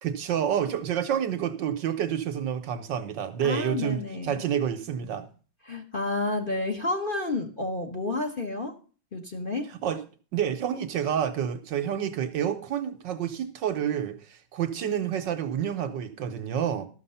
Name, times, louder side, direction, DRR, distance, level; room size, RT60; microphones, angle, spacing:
voice 1, 0.0-5.3 9.8-10.0 10.3-16.9, right 9 dB, 65° right, 1.5 m, -29 dB
voice 2, 3.4-4.4 5.6-8.7 9.1-9.7, left 2 dB, 30° left, 1.1 m, -30 dB
13.0 x 6.4 x 5.6 m
omnidirectional pair, 2.2 m